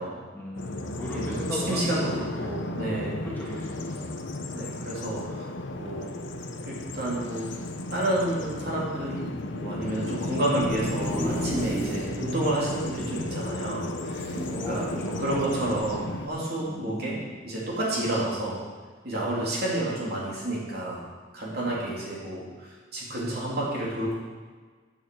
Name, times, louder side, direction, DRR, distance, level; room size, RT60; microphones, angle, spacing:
voice 1, 0.3-2.7 3.2-4.1 14.5-15.6 16.6-17.4 21.4-22.4, equal, 10° left, -5 dB, 1.9 m, -39 dB
Bird vocalization bird call bird song, 0.6-16.3, left 2 dB, 85° left, 1.0 m, -34 dB
voice 2, 1.1-2.1 2.4-3.2 4.5-6.1 6.7-7.5 7.9-9.2 9.5-14.3 14.7-17.1 17.4-18.6 19.0-21.0 21.3-24.1, right 1 dB, 55° right, -5 dB, 3.4 m, -30 dB
sound 1, 10.6-12.1 12.6-12.7 12.9-13.0 14.1-15.0 15.7-15.9, right 1 dB, 15° right, 2.1 m, -34 dB
9.1 x 6.8 x 7.8 m, 1.5 s
head